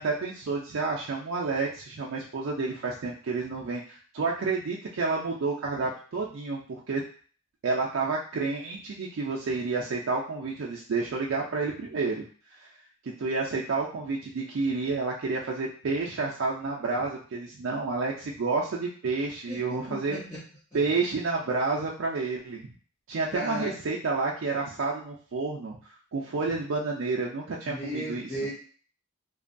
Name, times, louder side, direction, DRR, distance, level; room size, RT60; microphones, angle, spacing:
voice 1, 0.0-7.0 7.6-12.2 13.0-20.2 20.7-22.6 23.1-28.4, right 3 dB, 65° right, -2 dB, 0.4 m, -30 dB
voice 2, 19.5-20.4 23.3-23.7 27.7-28.5, left 1 dB, 15° left, -10 dB, 0.6 m, -35 dB
2.6 x 2.2 x 2.5 m, 0.42 s
head